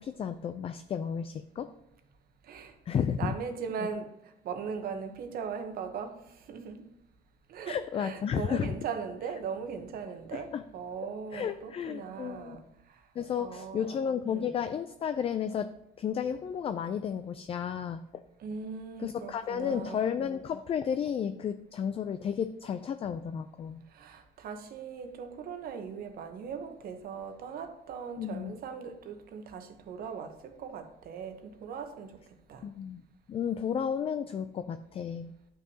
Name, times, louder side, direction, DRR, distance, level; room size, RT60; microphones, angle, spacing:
voice 1, 0.0-1.7 2.9-3.3 3.8-3.9 7.6-8.7 10.3-10.6 11.3-12.6 13.2-15.7 16.0-18.2 19.0-23.8 28.2-28.5 32.6-33.0 33.3-35.3, left 8 dB, 35° left, 0.4 m, -32 dB
voice 2, 3.2-4.2 4.4-6.2 6.5-6.8 7.5-12.6 13.4-13.9 14.2-14.5 18.4-20.0 23.9-32.2 32.5-32.7, right 6 dB, 60° right, 1.0 m, -39 dB
11.5 x 5.5 x 2.8 m
cardioid pair, 110°, 17 cm